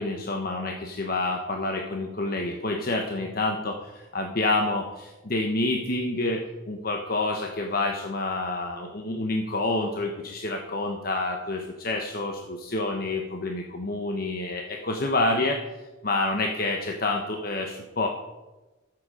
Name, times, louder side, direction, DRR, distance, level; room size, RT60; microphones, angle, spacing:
voice 1, 0.0-15.6 16.0-18.1, left 2 dB, 50° left, 2 dB, 1.1 m, -28 dB
14.0 x 7.9 x 5.0 m, 1.1 s
head